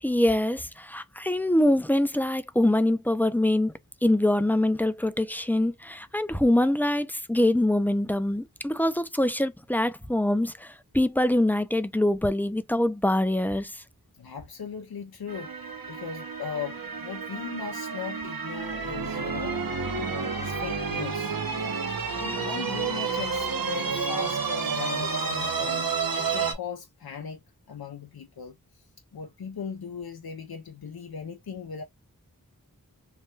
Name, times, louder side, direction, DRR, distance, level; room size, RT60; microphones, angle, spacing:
voice 1, 0.0-3.7 4.0-13.8, left 1 dB, 5° left, 0.4 m, -24 dB
voice 2, 14.1-19.6 20.1-21.4 22.1-25.9 26.2-28.6 29.1-31.8, left 6 dB, 85° left, 0.5 m, -38 dB
sound 1, 15.3-26.5, right 5 dB, 70° right, 0.9 m, -30 dB
3.2 x 2.2 x 3.1 m
wide cardioid pair, 40°, 36 cm